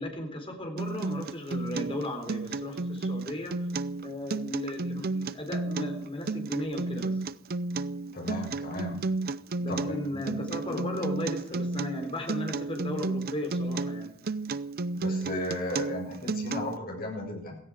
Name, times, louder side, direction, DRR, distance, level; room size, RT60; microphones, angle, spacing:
voice 1, 0.0-3.5 4.0-7.1 9.6-14.1, left 1 dB, 30° left, 3 dB, 4.0 m, -36 dB
Acoustic guitar, 0.8-16.8, right 3 dB, 50° right, 0.6 m, -32 dB
voice 2, 8.1-9.0 9.7-11.0 15.0-17.5, left 1 dB, 50° left, -1 dB, 7.5 m, -35 dB
16.5 x 16.0 x 4.9 m, 0.74 s
head